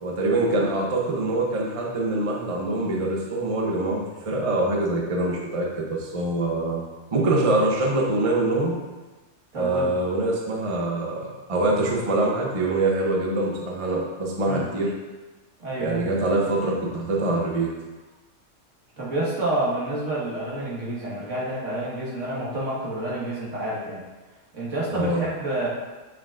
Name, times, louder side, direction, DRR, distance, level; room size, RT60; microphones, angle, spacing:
voice 1, 0.0-6.8 7.1-8.8 9.5-14.9 15.8-17.7 24.9-25.2, right 2 dB, 35° right, -1 dB, 0.7 m, -24 dB
voice 2, 9.5-9.9 14.5-14.7 15.6-16.0 19.0-24.0 24.5-25.7, right 1 dB, 75° right, -6 dB, 2.0 m, -28 dB
7.3 x 5.9 x 2.5 m, 1.2 s
omnidirectional pair, 1.3 m